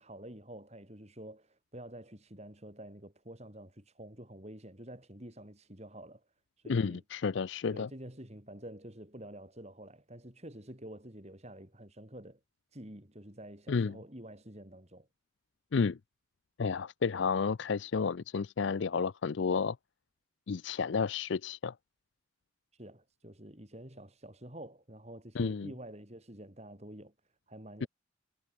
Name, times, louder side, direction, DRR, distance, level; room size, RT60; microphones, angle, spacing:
voice 1, 0.0-6.2 6.6-7.0 7.7-12.4 12.7-15.1 22.7-27.1 27.5-27.9, right 1 dB, 30° right, 4.0 m, -48 dB
voice 2, 6.7-7.9 13.7-13.9 15.7-16.0 16.6-19.8 20.5-21.7 25.4-25.7 27.8-27.9, left 5 dB, 60° left, 0.5 m, -31 dB
head